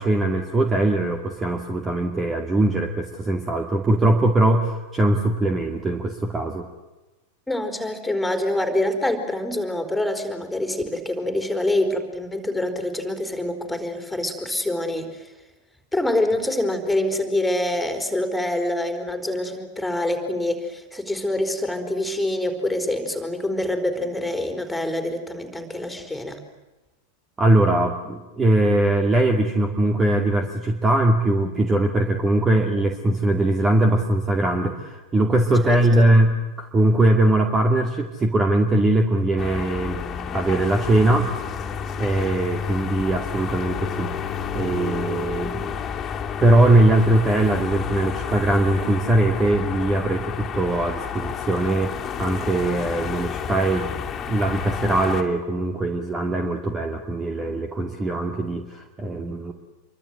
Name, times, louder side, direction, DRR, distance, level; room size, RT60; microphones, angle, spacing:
voice 1, 0.0-6.7 27.4-40.0 40.3-41.3 42.0-44.1 44.5-45.7 46.4-53.9 54.3-59.5, right 1 dB, 15° right, 5 dB, 2.3 m, -21 dB
voice 2, 7.5-15.3 15.9-26.4 35.6-36.1, left 1 dB, 5° left, 7 dB, 4.5 m, -26 dB
sound 1, 39.4-55.2, left 7 dB, 25° left, 3.0 m, -30 dB
27.5 x 24.0 x 8.0 m, 1.1 s
figure-of-eight pair, 90°, 0 cm